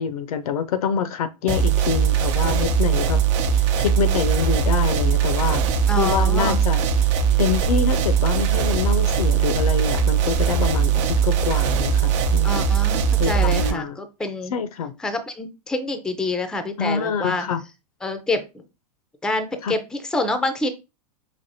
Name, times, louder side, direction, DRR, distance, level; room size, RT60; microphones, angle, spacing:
voice 1, 0.0-3.2 3.5-5.6 6.0-6.8 7.4-12.7 13.2-14.0 14.5-14.9 16.8-17.6 19.6-19.7, left 7 dB, 65° left, 0.6 m, -26 dB
sound 1, 1.5-13.7, right 7 dB, 50° right, 0.7 m, -20 dB
voice 2, 5.9-6.6 12.4-14.5 15.0-17.4 18.0-18.6 19.2-20.7, left 2 dB, 5° left, 0.5 m, -27 dB
5.1 x 2.5 x 2.7 m
hypercardioid pair, 100°, 20 cm